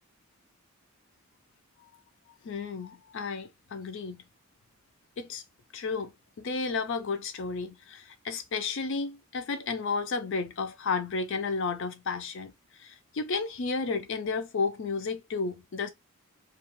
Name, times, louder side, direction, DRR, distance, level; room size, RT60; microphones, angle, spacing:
voice 1, 2.4-4.2 5.2-5.4 5.7-12.5 12.8-15.9, left 4 dB, 55° left, 0.4 m, -32 dB
2.4 x 2.3 x 2.9 m
head